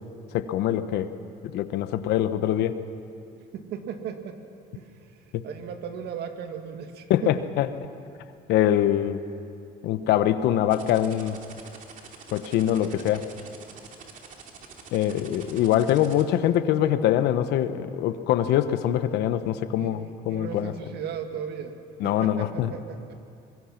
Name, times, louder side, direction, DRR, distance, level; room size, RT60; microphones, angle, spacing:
voice 1, 0.3-1.1 1.5-2.8 7.1-7.7 8.5-9.2 9.8-11.4 12.3-13.2 14.9-20.7 22.0-22.7, left 11 dB, 85° left, 11 dB, 1.1 m, -23 dB
voice 2, 3.5-4.4 4.7-4.9 5.4-7.4 19.8-21.7 22.0-23.1, right 7 dB, 75° right, 6 dB, 2.1 m, -36 dB
sound 1, 10.7-16.2, right 6 dB, 50° right, 2.7 m, -45 dB
24.5 x 21.5 x 6.0 m, 2.4 s
cardioid pair, 110°, 17 cm